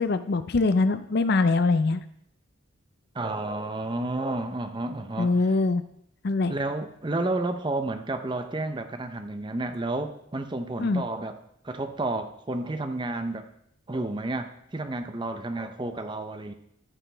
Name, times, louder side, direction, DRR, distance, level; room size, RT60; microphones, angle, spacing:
voice 1, 0.0-2.0 5.2-5.8 6.2-6.6 10.8-11.0, left 3 dB, 50° left, 12 dB, 0.5 m, -23 dB
voice 2, 3.1-5.4 6.5-11.4 11.6-13.5 13.9-16.5, right 2 dB, 25° right, 8 dB, 0.6 m, -31 dB
13.5 x 6.6 x 3.4 m, 0.72 s
head